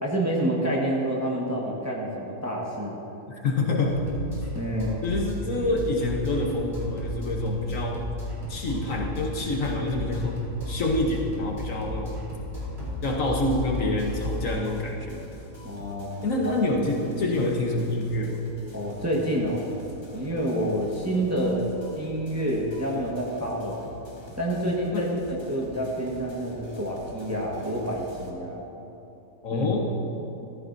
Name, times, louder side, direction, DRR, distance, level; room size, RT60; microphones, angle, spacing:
voice 1, 0.0-3.0 3.7-3.8 4.5-5.0 15.6-16.2 18.7-19.6 20.1-21.6 21.9-23.8 24.4-28.6 29.5-29.7, right 1 dB, 10° right, -3 dB, 1.2 m, -28 dB
voice 2, 3.3-3.9 5.0-8.1 8.5-12.2 13.0-15.2 16.2-18.4 24.9-25.1 29.4-29.9, left 2 dB, 60° left, 0 dB, 1.3 m, -27 dB
sound 1, 3.9-14.4, left 1 dB, 40° right, 2.7 m, -34 dB
sound 2, 14.0-28.3, left 1 dB, 20° left, 1.0 m, -47 dB
14.5 x 14.0 x 2.6 m, 2.9 s
omnidirectional pair, 1.7 m